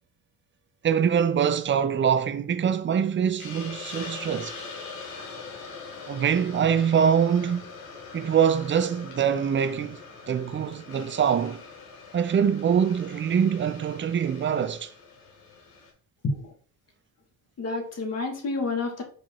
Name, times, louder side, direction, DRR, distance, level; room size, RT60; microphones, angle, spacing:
voice 1, 0.8-4.5 6.1-7.7 8.1-11.6 12.1-14.9, right 8 dB, 30° right, 0.5 m, -24 dB
Hiss, 3.4-15.9, left 4 dB, 75° left, 1.4 m, -42 dB
voice 2, 17.6-19.0, left 3 dB, 40° left, 1.6 m, -29 dB
4.7 x 2.6 x 4.3 m
supercardioid pair, 90°, 37 cm